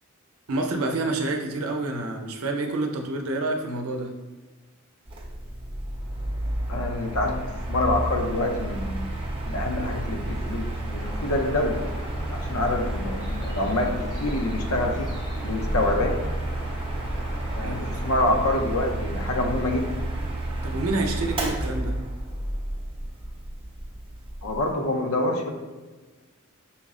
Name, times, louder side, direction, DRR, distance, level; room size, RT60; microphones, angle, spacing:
voice 1, 0.5-4.1 17.6-18.2 20.6-22.0, right 2 dB, 85° right, 3 dB, 0.6 m, -28 dB
Mechanical fan, 5.1-24.7, right 1 dB, 25° right, 0.8 m, -31 dB
voice 2, 6.7-7.4 7.7-9.0 9.5-11.8 12.3-15.1 15.4-16.2 17.6-19.9 24.4-25.5, left 2 dB, 85° left, 3 dB, 0.6 m, -26 dB
sound 1, 10.9-18.1, equal, 20° left, 0.6 m, -39 dB
5.7 x 2.0 x 3.6 m, 1.3 s
head